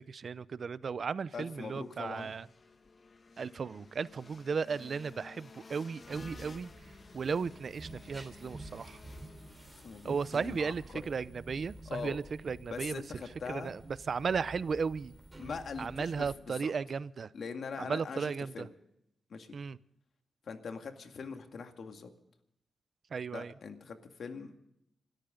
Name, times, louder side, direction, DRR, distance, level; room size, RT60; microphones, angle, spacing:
voice 1, 0.0-2.5 3.4-6.7 7.1-9.0 10.0-13.0 13.5-13.8 14.1-15.2 15.8-17.3 17.8-18.7 19.5-19.8 23.1-23.5, right 5 dB, 60° right, 18 dB, 0.6 m, -35 dB
voice 2, 1.3-2.3 9.8-11.0 11.9-12.2 12.6-13.7 15.4-16.7 17.3-18.7 19.3-19.6 20.5-22.1 23.3-24.6, left 5 dB, 70° left, 6 dB, 2.1 m, -42 dB
sound 1, 1.5-11.3, left 4 dB, 45° left, 1.4 m, -55 dB
sound 2, 6.0-16.3, right 2 dB, 20° right, 4.0 m, -50 dB
27.0 x 13.0 x 3.9 m, 0.80 s
cardioid pair, 70°, 0 cm